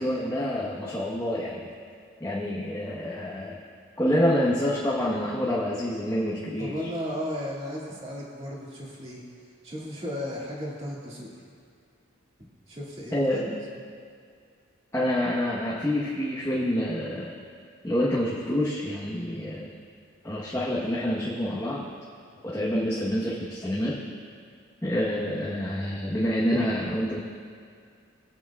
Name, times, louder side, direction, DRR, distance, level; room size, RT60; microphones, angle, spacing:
voice 1, 0.0-1.7 2.2-3.6 4.0-6.9 13.1-13.6 14.9-17.4 17.8-19.8 20.2-21.9 22.4-24.0 24.8-27.2, equal, 15° left, -7 dB, 1.0 m, -27 dB
voice 2, 6.6-9.2 9.6-11.5 12.7-13.4, equal, 30° right, -5 dB, 2.1 m, -35 dB
22.5 x 8.0 x 2.4 m, 2.3 s
head